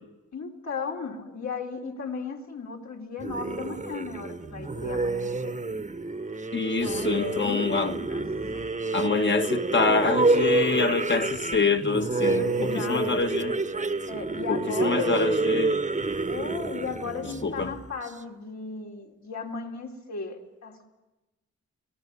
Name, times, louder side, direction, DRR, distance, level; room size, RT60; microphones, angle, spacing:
voice 1, 0.3-5.6 6.8-8.3 8.5-8.6 12.2-13.3 14.1-15.2 16.3-20.9, left 4 dB, 65° left, 3.8 m, -36 dB
sound 1, 3.2-18.1, right 3 dB, 25° right, 1.3 m, -28 dB
voice 2, 6.5-7.9 8.9-12.4 12.7-13.6 14.5-15.8 17.4-17.7, left 4 dB, 40° left, 1.8 m, -26 dB
26.0 x 18.5 x 8.5 m
cardioid pair, 55°, 30 cm